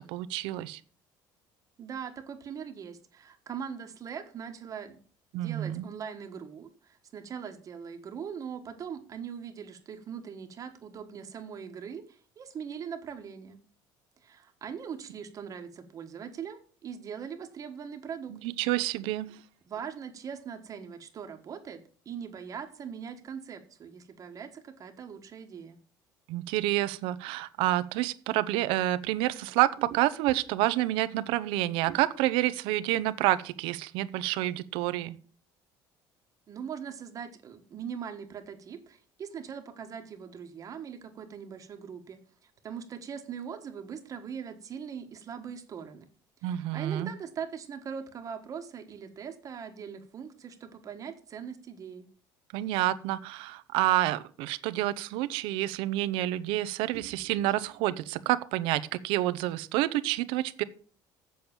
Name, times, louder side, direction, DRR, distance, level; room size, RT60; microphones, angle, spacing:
voice 1, 0.1-0.8 5.3-5.8 18.3-19.4 26.3-35.2 46.4-47.1 52.5-60.6, right 15 dB, 85° right, 15 dB, 0.7 m, -28 dB
voice 2, 1.8-5.0 5.3-13.6 14.2-18.3 19.7-25.8 36.5-46.1 46.4-52.1, right 7 dB, 40° right, 5 dB, 1.4 m, -41 dB
7.7 x 7.1 x 7.2 m, 0.42 s
cardioid pair, 120°, 9 cm